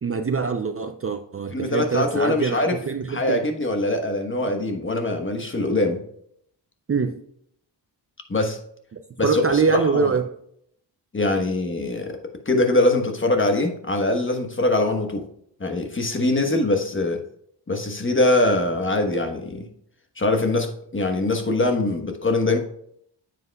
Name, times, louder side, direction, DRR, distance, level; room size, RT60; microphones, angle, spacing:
voice 1, 0.0-3.4 6.9-7.2 9.2-10.3, right 5 dB, 35° right, 0.5 m, -24 dB
voice 2, 1.5-2.8 3.1-6.0 8.3-8.6 9.2-10.1 11.1-12.2 12.5-15.3 15.6-17.2 17.7-19.6 20.2-22.6, left 2 dB, 30° left, 1.2 m, -23 dB
9.3 x 7.8 x 2.3 m
wide cardioid pair, 110°, 42 cm